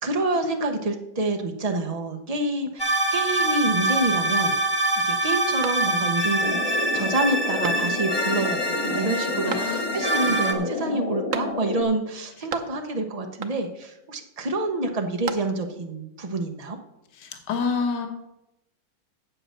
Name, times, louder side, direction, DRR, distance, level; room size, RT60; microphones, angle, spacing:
voice 1, 0.0-4.6 5.0-16.8, right 2 dB, 75° right, 4 dB, 0.3 m, -27 dB
sound 1, 2.8-10.5, right 1 dB, 20° left, 0.9 m, -25 dB
sound 2, 5.6-6.3 6.7-6.8 7.6-8.2 9.5-10.1 11.3-11.9 12.2-13.0 13.4-13.9 14.9-15.8, right 7 dB, 60° right, 0.9 m, -36 dB
sound 3, 6.4-11.8, left 2 dB, 45° left, 1.4 m, -30 dB
voice 2, 9.5-9.9 17.2-18.1, left 5 dB, 65° left, 5 dB, 1.8 m, -28 dB
8.5 x 7.8 x 6.5 m, 0.91 s
omnidirectional pair, 2.1 m